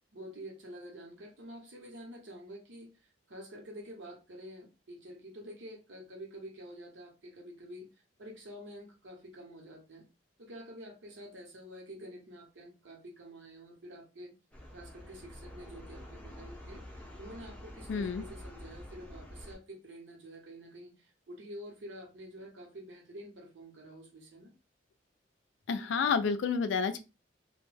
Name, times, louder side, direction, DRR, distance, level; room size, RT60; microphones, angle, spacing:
voice 1, 0.1-7.9 8.2-10.0 10.4-14.3 14.7-16.8 17.2-24.5, equal, 80° right, 0.9 m, -48 dB
sound 1, 14.5-19.6, left 1 dB, 5° left, 0.5 m, -48 dB
voice 2, 17.9-18.2 25.7-27.0, left 5 dB, 75° left, 0.3 m, -29 dB
2.2 x 2.1 x 3.1 m
head